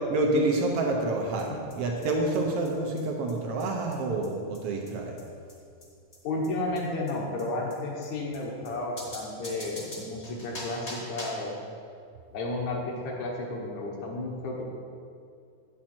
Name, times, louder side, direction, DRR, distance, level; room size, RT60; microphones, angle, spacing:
voice 1, 0.1-5.2, right 2 dB, 70° right, 1 dB, 1.5 m, -28 dB
sound 1, 1.4-1.5 1.7-1.8 2.0-2.1 2.3-2.4 2.6-2.7 3.0-3.1 3.3-3.4 3.6-3.7 3.9-4.0 4.2-4.3 4.5-4.6 4.9-5.0 5.2-5.3 5.5-5.6 5.8-5.9 6.1-6.2 6.4-6.5 6.7-6.8 7.1-7.2 7.4-7.5 7.7-7.8 8.0-8.1 8.3-8.4 8.6-8.7 9.0-11.5, left 1 dB, 35° left, 1.2 m, -42 dB
voice 2, 6.2-11.6 12.3-14.6, left 2 dB, 70° left, -1 dB, 2.4 m, -32 dB
8.9 x 7.4 x 4.4 m, 2.3 s
omnidirectional pair, 3.5 m